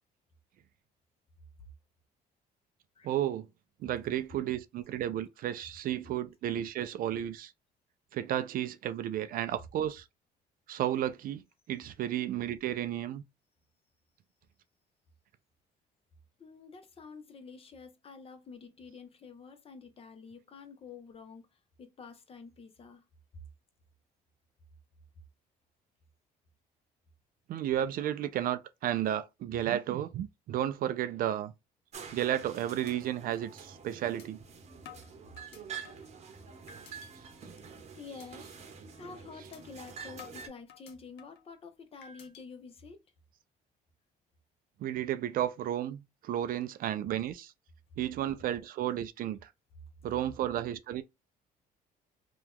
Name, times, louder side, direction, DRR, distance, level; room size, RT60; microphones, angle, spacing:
voice 1, 3.0-3.5 3.8-7.5 8.1-10.0 10.7-11.4 11.7-13.2 27.5-31.5 32.1-34.4 38.1-38.5 39.3-39.5 44.8-47.5 48.0-49.5 50.0-51.0, right 11 dB, 60° right, 0.4 m, -33 dB
voice 2, 16.4-23.0 38.0-38.5 39.0-43.0, left 5 dB, 35° left, 0.8 m, -49 dB
sound 1, 31.9-40.5, right 6 dB, 40° right, 0.8 m, -47 dB
sound 2, 32.9-33.0 33.4-33.5 34.2-34.3 34.9-36.1 36.7-37.1 37.5-37.8 38.2-38.3 38.7-38.9 39.5-39.6 40.2-41.5 42.0-42.4, left 8 dB, 80° left, 0.7 m, -52 dB
2.8 x 2.3 x 3.5 m
cardioid pair, 110°, 17 cm